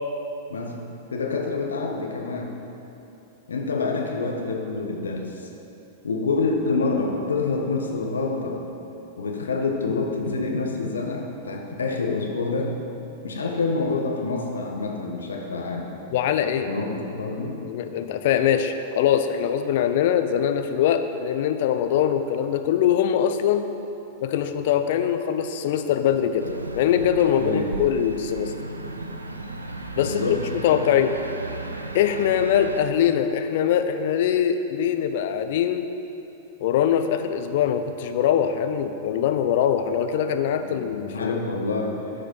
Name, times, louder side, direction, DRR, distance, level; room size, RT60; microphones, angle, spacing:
voice 1, 0.5-0.8 1.1-2.6 3.5-5.5 6.0-8.6 9.2-12.7 13.2-15.9 16.7-17.6 27.4-27.7 30.0-30.4 40.6-40.9 41.1-42.0, left 3 dB, 75° left, 1 dB, 1.2 m, -27 dB
voice 2, 16.1-16.7 17.6-23.7 24.2-26.5 26.7-28.5 30.0-30.2 30.6-31.1 31.9-35.9 36.6-41.3, left 9 dB, 55° left, 8 dB, 0.6 m, -22 dB
sound 1, 26.4-32.8, right 2 dB, 85° right, 0.6 m, -35 dB
13.0 x 5.0 x 4.5 m, 2.9 s
figure-of-eight pair, 95°, 0 cm